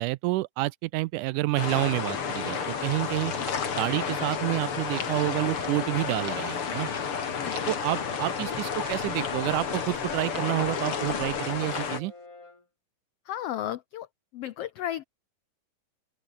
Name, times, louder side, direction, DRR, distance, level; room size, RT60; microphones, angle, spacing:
voice 1, 0.0-3.3 3.8-6.9 7.7-12.1, right 19 dB, 80° right, 2.1 m, -29 dB
sound 1, 1.6-12.0, left 6 dB, 45° left, 3.1 m, -31 dB
sound 2, 2.6-4.5 4.8-5.7 6.0-7.8 8.1-8.5 8.8-9.2 9.5-9.8 10.2-10.6 10.9-11.3 11.6-12.0, right 4 dB, 40° right, 4.2 m, -45 dB
Brass instrument, 7.8-12.7, left 3 dB, 25° left, 4.2 m, -48 dB
voice 2, 13.2-14.1 14.3-15.0, left 12 dB, 85° left, 1.3 m, -34 dB
open air
omnidirectional pair, 3.7 m